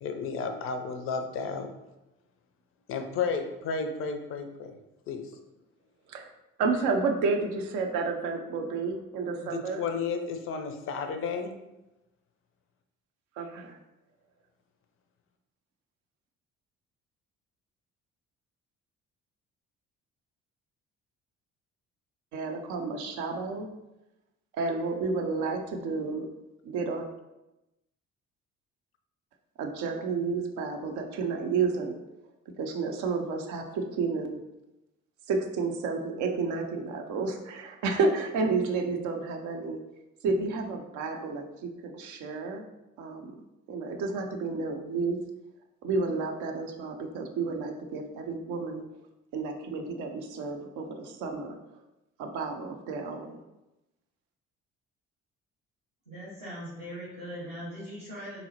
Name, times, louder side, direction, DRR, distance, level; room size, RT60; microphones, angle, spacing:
voice 1, 0.0-1.7 2.9-4.7 5.1-5.3 9.4-11.5, left 5 dB, 35° left, 6 dB, 0.4 m, -32 dB
voice 2, 6.6-9.8 13.4-13.8 22.3-23.7 24.5-26.3 26.6-27.1 29.6-32.0 32.6-34.4 35.3-39.8 40.2-42.6 43.0-43.3 43.7-45.2 45.8-48.8 49.3-51.6 52.2-53.4, right 4 dB, 50° right, 3 dB, 0.5 m, -31 dB
voice 3, 56.1-58.4, equal, 85° right, -12 dB, 1.3 m, -40 dB
3.8 x 2.0 x 2.8 m, 0.96 s
figure-of-eight pair, 45°, 38 cm